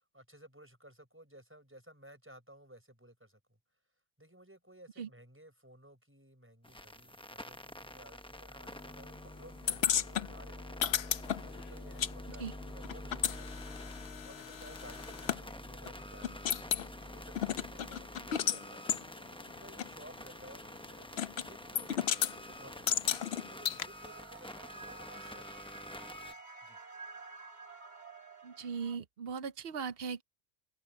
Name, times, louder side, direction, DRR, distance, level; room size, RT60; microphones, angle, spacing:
voice 1, 0.0-3.4 4.2-13.7 14.2-16.5 16.9-23.1 23.5-26.8, right 1 dB, 10° right, 5.7 m, -57 dB
sound 1, 6.6-26.3, left 1 dB, 5° left, 0.8 m, -47 dB
sound 2, 9.7-12.1 12.4-15.4 15.9-16.0 16.2-16.9 17.4-18.6 18.9-19.0 19.8-19.9 21.2-21.5 21.8-22.3 22.9-23.8, left 9 dB, 70° left, 1.0 m, -33 dB
sound 3, 23.9-29.0, right 3 dB, 40° right, 1.9 m, -50 dB
voice 2, 28.4-30.2, right 6 dB, 60° right, 1.0 m, -38 dB
omnidirectional pair, 1.1 m